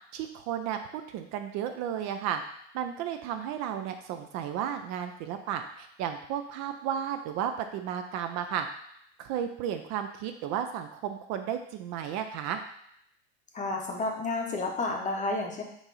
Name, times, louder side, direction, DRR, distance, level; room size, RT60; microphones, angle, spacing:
voice 1, 0.1-2.4 2.7-8.7 9.2-12.6, right 9 dB, 50° right, 7 dB, 0.5 m, -33 dB
voice 2, 13.5-15.6, left 3 dB, 20° left, 1 dB, 0.8 m, -31 dB
4.6 x 2.6 x 4.0 m, 0.72 s
supercardioid pair, 105°, 35 cm